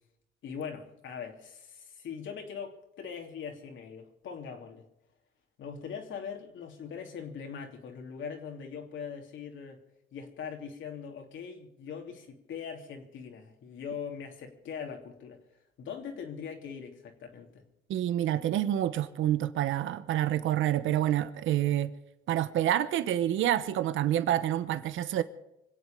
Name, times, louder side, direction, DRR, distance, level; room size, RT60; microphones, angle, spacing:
voice 1, 0.4-4.9 5.6-9.8 10.1-15.4 15.8-17.6, left 6 dB, 75° left, 3.0 m, -41 dB
voice 2, 17.9-21.9 22.3-25.2, right 12 dB, 80° right, 0.9 m, -28 dB
25.0 x 8.4 x 6.9 m
cardioid pair, 90°, 20 cm